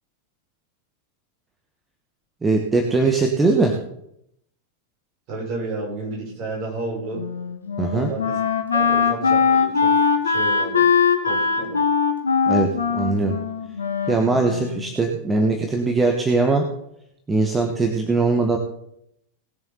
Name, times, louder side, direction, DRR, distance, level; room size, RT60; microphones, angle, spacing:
voice 1, 2.4-3.8 7.8-8.1 12.5-13.4 14.1-16.7 17.3-18.6, right 3 dB, 15° right, 3 dB, 1.4 m, -20 dB
voice 2, 5.3-7.2 7.9-8.4 8.7-9.9 10.2-10.8 11.2-11.8, right 2 dB, 45° right, -2 dB, 5.7 m, -31 dB
Wind instrument woodwind instrument, 7.1-14.9, left 5 dB, 75° left, 1.5 m, -21 dB
19.0 x 7.2 x 4.1 m, 0.75 s
figure-of-eight pair, 90°, 0 cm